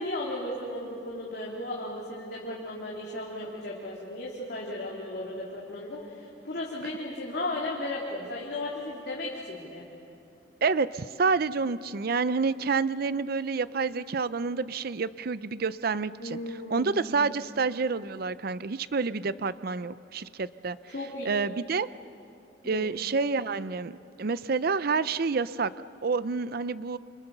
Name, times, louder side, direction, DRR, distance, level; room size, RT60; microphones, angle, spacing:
voice 1, 0.0-9.8 16.2-17.1 20.9-21.3 22.6-22.9, left 1 dB, 65° left, -5 dB, 3.7 m, -35 dB
voice 2, 10.6-16.4 16.7-20.8 21.3-21.9 22.6-25.7 26.0-27.0, right 4 dB, 55° right, 15 dB, 0.6 m, -28 dB
29.5 x 28.5 x 6.8 m, 2.6 s
head